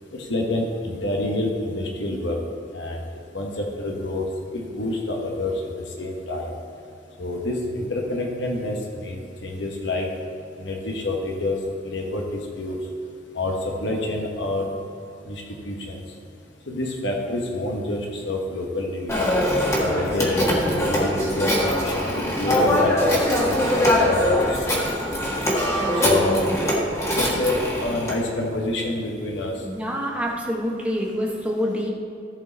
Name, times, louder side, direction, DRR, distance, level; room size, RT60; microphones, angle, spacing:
voice 1, 0.1-2.4 2.7-3.0 3.3-4.3 4.5-5.5 6.0-6.5 7.2-10.1 10.6-11.6 11.8-12.8 13.3-14.6 15.3-16.0 16.7-19.1 19.8-24.5 26.0-26.4 27.1-29.5, left 2 dB, 75° left, 0 dB, 1.2 m, -28 dB
Telephone, 19.1-28.2, left 1 dB, 15° left, 1.5 m, -22 dB
voice 2, 29.6-31.9, equal, 5° right, -2 dB, 1.2 m, -26 dB
14.5 x 4.9 x 4.0 m, 2.7 s
head